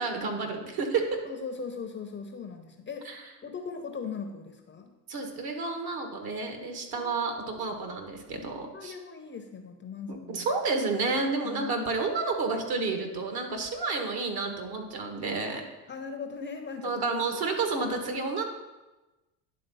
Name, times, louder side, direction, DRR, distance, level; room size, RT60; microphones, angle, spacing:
voice 1, 0.0-1.1 3.0-3.2 5.1-8.9 10.3-15.6 16.8-18.4, right 4 dB, 50° right, 4 dB, 1.7 m, -30 dB
voice 2, 1.3-4.9 6.9-7.7 8.7-10.5 11.4-11.7 15.9-16.9, left 5 dB, 20° left, 5 dB, 0.7 m, -39 dB
10.5 x 3.8 x 5.5 m, 1.1 s
hypercardioid pair, 85°, 50 cm